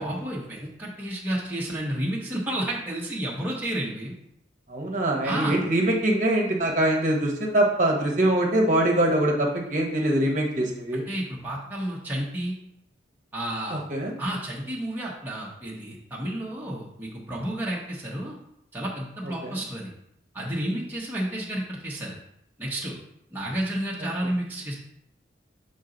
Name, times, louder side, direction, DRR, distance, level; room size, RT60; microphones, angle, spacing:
voice 1, 0.0-4.1 5.2-5.6 10.9-12.5 13.3-13.8 14.2-18.4 18.7-19.9 20.3-22.2 22.6-23.0 23.3-24.8, right 1 dB, 10° right, -5 dB, 1.0 m, -31 dB
voice 2, 4.7-11.0 13.7-14.1 19.4-19.6, right 1 dB, 40° right, 0 dB, 1.1 m, -23 dB
7.2 x 4.0 x 3.9 m, 0.76 s
head